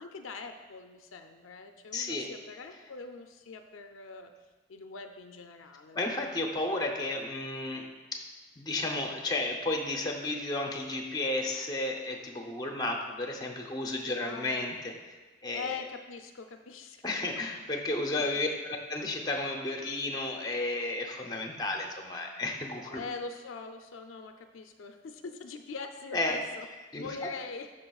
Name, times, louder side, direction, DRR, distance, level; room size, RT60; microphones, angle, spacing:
voice 1, 0.0-4.3 4.7-6.0 14.2-14.7 15.5-17.2 18.2-18.5 22.9-26.7 27.0-27.7, left 4 dB, 80° left, 6 dB, 0.4 m, -43 dB
voice 2, 1.9-2.3 5.9-8.2 8.6-15.1 15.4-15.7 17.0-23.0 26.1-26.4 26.9-27.3, left 2 dB, 20° left, 2 dB, 0.7 m, -33 dB
11.5 x 5.0 x 2.3 m, 1.3 s
head